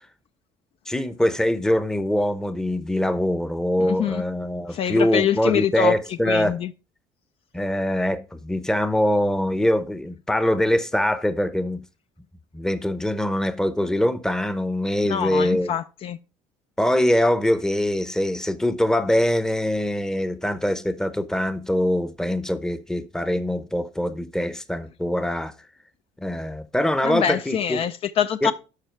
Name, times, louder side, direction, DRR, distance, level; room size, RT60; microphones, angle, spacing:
voice 1, 0.9-6.6 7.5-11.8 12.5-15.7 16.8-25.5 26.2-27.8 28.4-28.5, left 1 dB, 5° left, 0.8 m, -23 dB
voice 2, 3.8-4.2 4.7-6.7 15.1-16.2 27.0-28.5, left 9 dB, 45° left, 0.5 m, -25 dB
12.5 x 5.6 x 4.5 m
cardioid pair, 125°, 13 cm